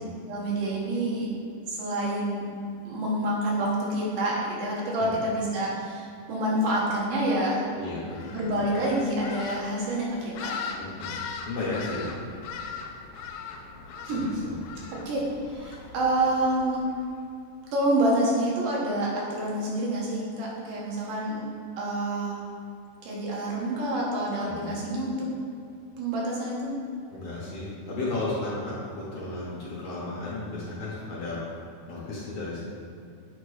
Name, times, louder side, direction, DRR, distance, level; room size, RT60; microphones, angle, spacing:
voice 1, 0.3-1.3 1.7-2.4 2.9-7.6 8.3-10.6 14.1-14.2 15.1-16.8 17.7-21.5 21.8-22.4 23.0-25.3 26.0-26.7, right 1 dB, 85° right, -4 dB, 2.8 m, -27 dB
voice 2, 7.7-8.4 10.7-11.2 11.5-12.1 14.0-14.6 24.4-24.7 27.1-31.4 31.9-32.6, left 2 dB, 65° left, -7 dB, 1.7 m, -34 dB
sound 1, 8.1-17.1, left 5 dB, 85° left, 2.1 m, -40 dB
8.4 x 2.9 x 4.7 m, 2.5 s
omnidirectional pair, 3.7 m